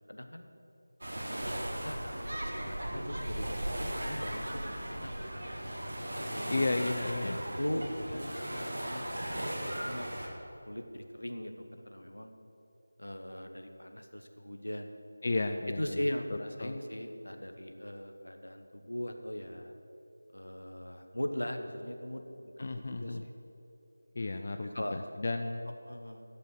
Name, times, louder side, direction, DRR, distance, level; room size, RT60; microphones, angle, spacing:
voice 1, 0.1-0.4 1.3-2.0 2.3-5.3 6.2-10.1 10.7-12.3 13.0-14.9 15.8-19.7 20.3-22.2 22.6-23.3 24.6-25.0 25.9-26.2, left 1 dB, 75° left, 6 dB, 1.1 m, -40 dB
sound 1, 1.0-10.3, right 1 dB, 60° right, 1.7 m, -37 dB
voice 2, 6.5-7.4 15.2-16.0 16.3-16.7 22.6-23.2 24.2-25.7, left 2 dB, 40° left, 6 dB, 0.4 m, -33 dB
11.5 x 5.7 x 7.7 m, 2.9 s
figure-of-eight pair, 165°, 0 cm